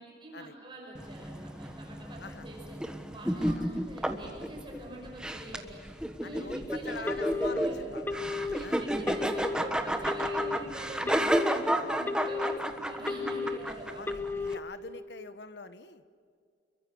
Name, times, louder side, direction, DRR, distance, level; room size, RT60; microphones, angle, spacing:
voice 1, 0.0-2.9 3.1-5.8 6.2-7.8 8.4-14.0, right 1 dB, 25° right, -1 dB, 5.1 m, -44 dB
sound 1, 0.9-14.5, right 1 dB, 5° right, 1.3 m, -32 dB
voice 2, 6.2-8.1 8.6-8.9 11.8-12.0 13.9-16.0, left 4 dB, 65° left, 12 dB, 1.3 m, -44 dB
Telephone, 7.1-7.6 8.1-8.6 9.1-9.6 10.1-10.6 11.1-11.6 12.1-12.6 13.1-13.6 14.1-14.6, left 4 dB, 10° left, 0.9 m, -33 dB
29.0 x 23.0 x 6.4 m, 2.3 s
head